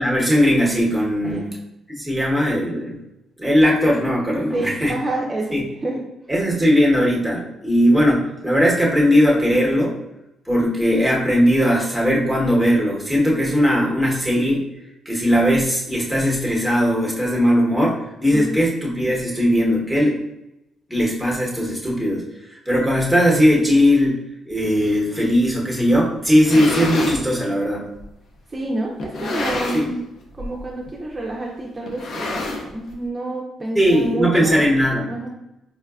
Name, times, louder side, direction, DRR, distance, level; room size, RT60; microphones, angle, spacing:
voice 1, 0.0-1.6 2.0-3.0 3.4-4.9 5.5-5.6 6.3-9.9 10.5-14.6 15.0-20.2 20.9-22.2 22.5-24.2 24.5-27.9 29.7-29.9 33.7-35.3, equal, 5° left, -3 dB, 1.0 m, -18 dB
voice 2, 4.5-6.0 18.3-18.6 28.5-34.6 35.1-35.3, right 2 dB, 25° right, -2 dB, 0.5 m, -28 dB
sound 1, 26.2-27.2 28.0-28.1 29.0-30.0 30.3-30.6 30.9-31.0 31.9-32.9, left 2 dB, 60° left, 0.6 m, -27 dB
4.7 x 2.1 x 2.3 m, 0.89 s
cardioid pair, 90°, 0 cm